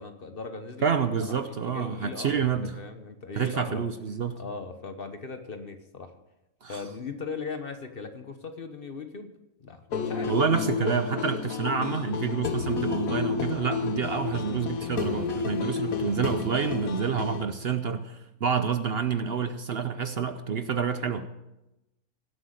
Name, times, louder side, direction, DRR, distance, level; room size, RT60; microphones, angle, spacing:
voice 1, 0.0-0.9 1.2-3.8 4.4-6.1 6.7-9.3 9.6-10.4, left 4 dB, 45° left, 8 dB, 1.2 m, -39 dB
voice 2, 0.8-2.7 3.4-4.4 6.6-6.8 10.3-21.3, right 6 dB, 55° right, 9 dB, 0.8 m, -28 dB
sound 1, 9.9-17.4, left 6 dB, 80° left, 1.5 m, -31 dB
17.5 x 7.9 x 6.5 m, 0.94 s
omnidirectional pair, 1.5 m